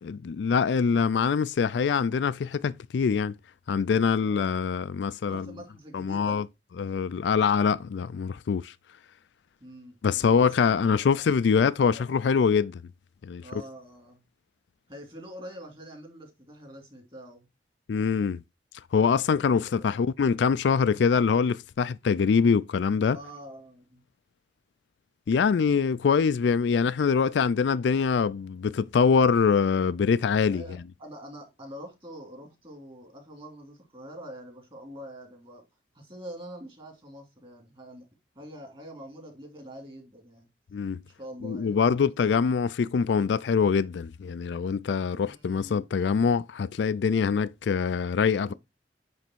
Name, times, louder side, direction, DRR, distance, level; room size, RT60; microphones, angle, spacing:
voice 1, 0.0-3.3 3.7-5.5 5.9-6.5 6.8-8.7 10.0-12.8 13.2-13.4 17.9-18.4 18.9-23.2 25.3-30.6 40.7-41.0 41.4-48.5, left 6 dB, 75° left, 0.4 m, -24 dB
voice 2, 4.2-4.5 5.3-6.4 9.6-12.0 13.4-14.2 14.9-17.5 19.6-19.9 23.1-24.0 30.5-35.6 35.9-38.1 38.3-40.5 41.0-42.1 45.2-45.9 48.5-48.6, equal, 30° right, 2.8 m, -45 dB
9.1 x 3.4 x 4.5 m
head